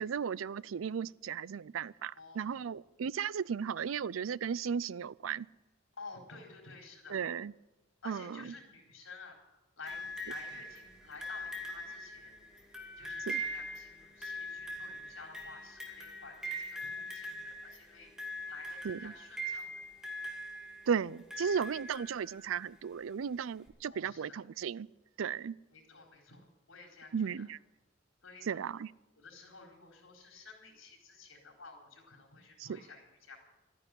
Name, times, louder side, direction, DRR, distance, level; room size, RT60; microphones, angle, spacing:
voice 1, 0.0-5.5 7.1-7.5 8.1-8.5 13.3-13.4 18.8-19.1 20.9-24.9 25.2-25.6 27.1-27.6 28.5-28.9 32.6-32.8, right 7 dB, 80° right, 21 dB, 0.4 m, -35 dB
voice 2, 2.1-2.7 6.0-7.2 8.0-19.8 23.9-24.4 25.7-27.5 28.2-28.6 29.1-33.4, left 4 dB, 85° left, 1 dB, 4.4 m, -52 dB
sound 1, 9.9-22.7 23.7-23.8, equal, 5° right, 2.2 m, -42 dB
13.0 x 9.9 x 10.0 m, 1.0 s
head